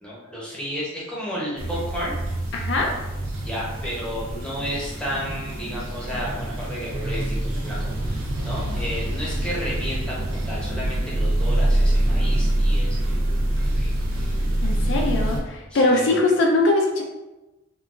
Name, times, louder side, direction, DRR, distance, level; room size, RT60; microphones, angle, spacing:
voice 1, 0.0-2.2 3.4-13.3 13.6-13.9 15.7-16.2, equal, 5° left, -6 dB, 0.7 m, -32 dB
sound 1, 1.6-15.4, right 1 dB, 75° right, 0.7 m, -25 dB
voice 2, 2.5-2.9 14.6-17.0, left 2 dB, 55° left, 1 dB, 0.4 m, -21 dB
3.6 x 2.3 x 2.4 m, 1.0 s
head